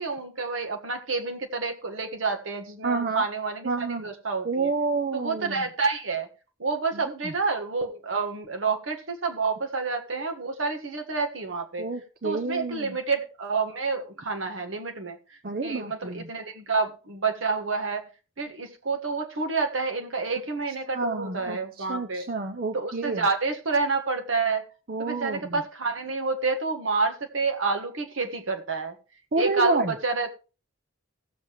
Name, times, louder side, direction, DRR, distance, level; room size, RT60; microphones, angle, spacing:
voice 1, 0.0-4.7 5.1-6.3 6.6-11.9 12.2-15.2 15.6-18.0 18.4-22.3 22.7-24.7 25.0-28.9 29.3-30.3, right 4 dB, 70° right, 1.5 m, -29 dB
voice 2, 2.8-3.2 3.7-4.1 4.5-5.6 7.2-7.3 11.8-13.0 15.4-16.3 20.9-23.2 24.9-25.6 29.3-29.9, right 3 dB, 45° right, 0.6 m, -29 dB
16.0 x 7.5 x 3.1 m
head